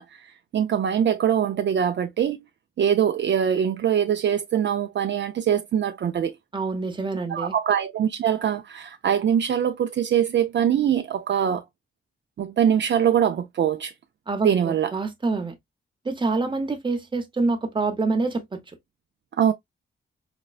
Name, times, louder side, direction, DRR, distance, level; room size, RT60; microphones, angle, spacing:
voice 1, 0.0-2.4 2.8-6.3 7.3-11.6 12.4-13.9 14.4-14.9 19.4-19.5, right 9 dB, 60° right, 0.4 m, -23 dB
voice 2, 6.5-7.5 14.3-15.5 16.0-18.6, right 3 dB, 20° right, 0.8 m, -26 dB
5.0 x 2.1 x 2.3 m
wide cardioid pair, 150°, 21 cm